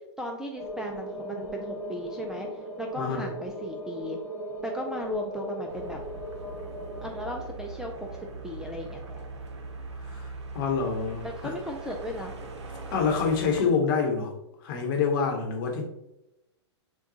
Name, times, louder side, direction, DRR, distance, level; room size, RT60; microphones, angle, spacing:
voice 1, 0.2-2.5 2.8-4.2 4.6-6.0 7.0-8.1 8.4-9.2 11.2-12.3, equal, 5° right, 1 dB, 0.3 m, -36 dB
sound 1, 0.6-7.4, equal, 20° right, 0.9 m, -38 dB
voice 2, 3.0-3.3 10.1-11.5 12.9-14.3 14.6-15.9, left 5 dB, 45° left, 2 dB, 1.0 m, -27 dB
sound 2, 5.7-13.6, right 3 dB, 65° right, 0.7 m, -40 dB
6.7 x 2.3 x 2.7 m, 0.91 s
figure-of-eight pair, 110°, 15 cm